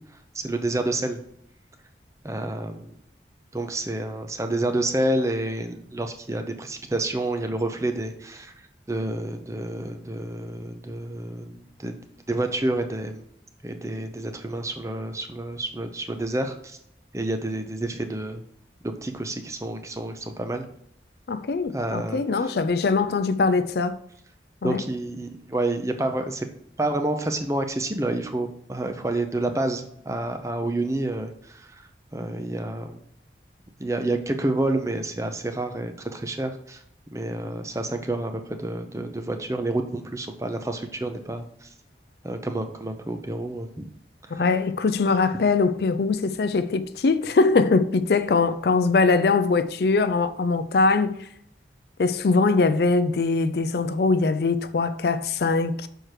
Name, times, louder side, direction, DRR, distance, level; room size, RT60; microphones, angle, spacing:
voice 1, 0.3-1.2 2.2-2.9 3.5-8.5 8.9-12.0 12.3-13.2 13.6-16.8 17.1-18.4 18.8-20.7 21.7-22.5 24.6-26.5 26.8-33.0 33.8-36.8 37.1-41.7 42.2-43.9 44.3-44.4, right 2 dB, 15° right, 0.6 m, -29 dB
voice 2, 21.3-24.0 24.6-24.8 44.3-51.2 52.0-55.9, left 4 dB, 65° left, 0.4 m, -22 dB
6.4 x 4.5 x 4.8 m
head